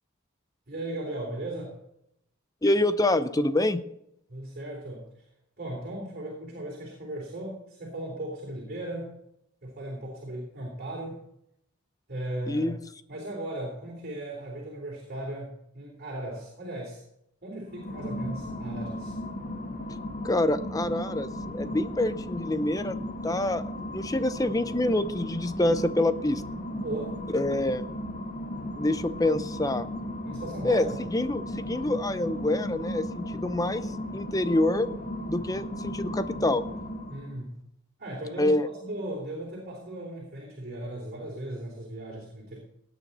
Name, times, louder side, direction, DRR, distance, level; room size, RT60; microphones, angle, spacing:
voice 1, 0.7-1.8 4.3-5.3 5.6-9.2 9.6-11.2 12.1-12.7 13.1-17.0 17.4-19.2 26.8-27.2 30.2-31.0 37.1-37.6 38.0-42.6, right 1 dB, 45° right, -3 dB, 3.7 m, -37 dB
voice 2, 2.6-3.8 12.5-12.8 20.2-26.4 27.3-27.9 28.7-29.9 30.6-34.9 35.3-36.7 38.4-38.7, left 1 dB, 15° left, 12 dB, 0.6 m, -26 dB
sound 1, 17.6-37.4, equal, 40° left, 1.7 m, -36 dB
18.0 x 9.1 x 4.2 m, 0.78 s
head